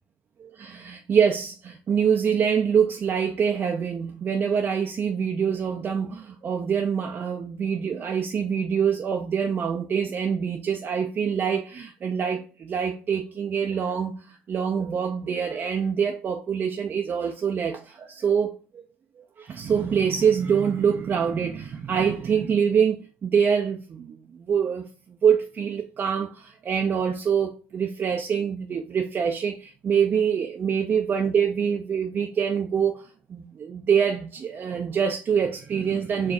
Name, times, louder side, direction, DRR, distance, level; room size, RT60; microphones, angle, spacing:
voice 1, 0.4-18.9 19.4-24.9 25.2-36.3, right 7 dB, 35° right, 0.6 m, -25 dB
4.7 x 3.1 x 2.6 m
hypercardioid pair, 70°, 5 cm